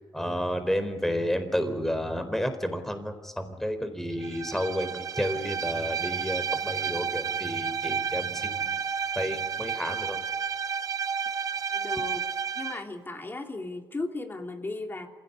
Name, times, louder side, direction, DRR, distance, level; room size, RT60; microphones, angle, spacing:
voice 1, 0.1-8.8 9.1-10.2, equal, 5° left, 9 dB, 4.3 m, -31 dB
Bowed string instrument, 4.2-12.8, right 6 dB, 50° right, 1.3 m, -31 dB
voice 2, 11.7-12.2 12.5-15.1, left 2 dB, 30° left, 4 dB, 3.0 m, -36 dB
27.5 x 17.0 x 9.8 m, 1.3 s
cardioid pair, 85°, 7 cm